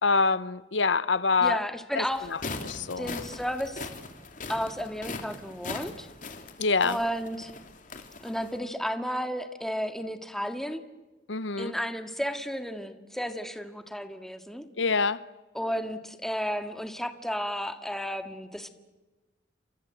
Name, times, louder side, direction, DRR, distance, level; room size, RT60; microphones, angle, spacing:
voice 1, 0.0-1.6 1.9-2.4 2.6-3.1 6.6-7.0 11.3-11.8 14.8-15.2, left 4 dB, 85° left, 0.9 m, -25 dB
voice 2, 1.4-2.3 3.0-3.9 4.5-6.1 6.8-7.5 8.2-10.8 11.6-14.7 15.5-18.7, equal, ahead, 1.9 m, -33 dB
sound 1, 2.1-8.6, left 3 dB, 45° left, 2.9 m, -40 dB
29.5 x 25.5 x 7.9 m
head